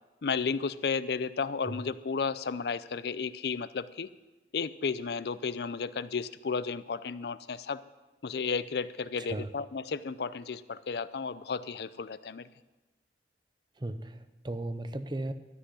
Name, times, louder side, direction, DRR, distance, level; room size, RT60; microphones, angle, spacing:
voice 1, 0.2-4.1 4.5-7.8 8.2-12.5, left 5 dB, 60° left, 16 dB, 0.5 m, -33 dB
voice 2, 9.2-9.5 13.8-15.3, right 1 dB, 25° right, 11 dB, 0.6 m, -36 dB
13.0 x 6.0 x 9.7 m, 1.1 s
head